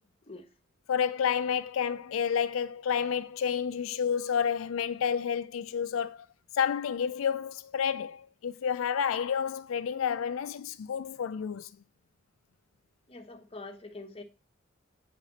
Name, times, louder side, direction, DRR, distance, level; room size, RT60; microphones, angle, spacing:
voice 1, 0.9-6.3 6.5-11.7, left 7 dB, 85° left, 0.4 m, -30 dB
voice 2, 13.1-14.2, left 2 dB, 30° left, 1.0 m, -44 dB
8.6 x 4.9 x 4.1 m
head